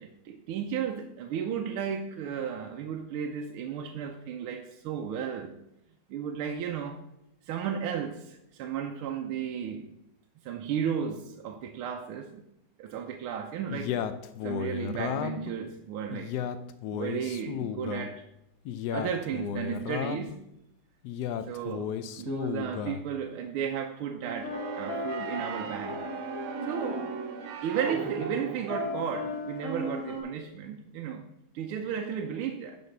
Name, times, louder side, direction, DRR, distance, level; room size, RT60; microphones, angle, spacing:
voice 1, 0.0-5.6 6.1-7.0 7.4-9.9 10.4-12.4 12.8-14.0 14.4-16.3 16.9-18.3 18.9-20.4 21.4-21.9 22.2-26.1 26.6-27.2 27.4-31.3 31.5-32.8, right 8 dB, 90° right, 4 dB, 1.6 m, -34 dB
Male speech man speaking, 13.7-15.5 16.1-18.1 18.6-20.3 21.0-23.0, left 9 dB, 75° left, 0.9 m, -34 dB
sound 1, 24.2-27.2 27.7-30.2, left 2 dB, 35° left, 2.5 m, -37 dB
sound 2, 24.5-29.3, right 5 dB, 70° right, 1.7 m, -37 dB
10.5 x 4.2 x 6.6 m, 0.84 s
omnidirectional pair, 2.3 m